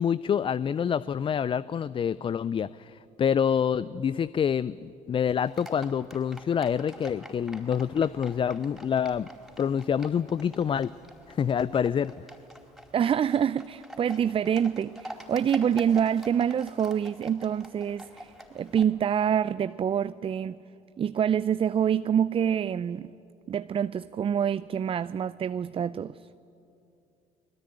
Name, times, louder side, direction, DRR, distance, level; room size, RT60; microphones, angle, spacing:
voice 1, 0.0-9.3 9.6-10.9 11.3-12.1, left 8 dB, 30° left, 0.5 m, -27 dB
Livestock farm animals working animals, 5.5-18.8, equal, ahead, 4.4 m, -46 dB
voice 2, 12.9-20.6 21.0-23.1 23.5-26.3, right 8 dB, 30° right, 0.5 m, -26 dB
21.5 x 20.0 x 9.9 m
hypercardioid pair, 65°, 18 cm